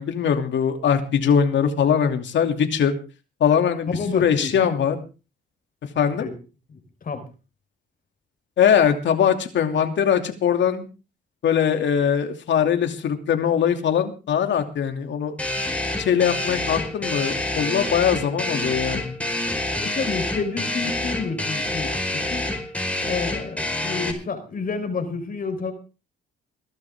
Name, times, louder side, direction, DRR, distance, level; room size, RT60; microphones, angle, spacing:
voice 1, 0.0-2.9 3.4-5.0 6.0-6.3 8.6-10.9 11.4-15.4 16.0-19.2, left 8 dB, 65° left, 6 dB, 2.7 m, -21 dB
voice 2, 3.9-4.8 6.2-6.3 6.7-7.2 19.8-22.4 23.0-25.7, left 4 dB, 45° left, 7 dB, 4.1 m, -30 dB
sound 1, 15.4-24.1, left 1 dB, 5° left, 4.7 m, -27 dB
22.5 x 12.0 x 3.7 m, 0.33 s
cardioid pair, 90°, 20 cm